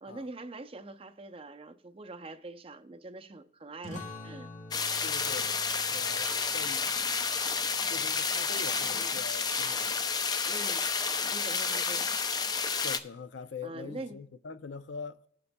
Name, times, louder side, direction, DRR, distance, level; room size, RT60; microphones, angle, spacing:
voice 1, 0.0-4.5 10.5-10.9 11.3-12.1 13.6-14.2, right 2 dB, 30° right, 0.5 m, -44 dB
sound 1, 3.8-9.0, left 2 dB, 45° left, 1.2 m, -48 dB
sound 2, 4.7-13.0, left 5 dB, 20° left, 0.4 m, -30 dB
voice 2, 5.0-5.6 5.9-6.9 7.9-10.2 12.8-15.3, left 5 dB, 75° left, 0.5 m, -43 dB
18.5 x 6.9 x 2.2 m
head